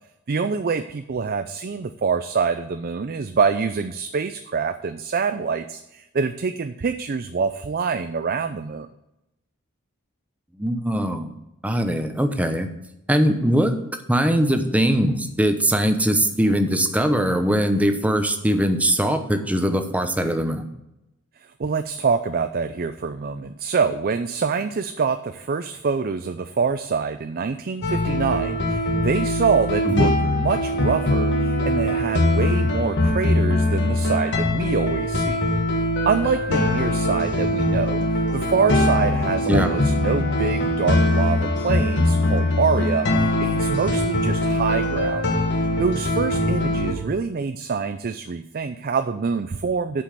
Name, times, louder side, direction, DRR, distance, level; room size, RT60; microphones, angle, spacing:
voice 1, 0.3-8.9 21.4-35.4 36.1-38.0 38.3-45.2 45.8-50.0, right 5 dB, 40° right, 9 dB, 0.4 m, -25 dB
voice 2, 10.6-11.3 11.6-12.7 13.1-13.7 14.1-20.6 29.8-30.2 39.5-39.8, equal, 5° right, 7 dB, 0.8 m, -21 dB
sound 1, 27.8-46.9, left 1 dB, 55° left, 1.5 m, -22 dB
8.4 x 5.4 x 7.4 m, 0.89 s
head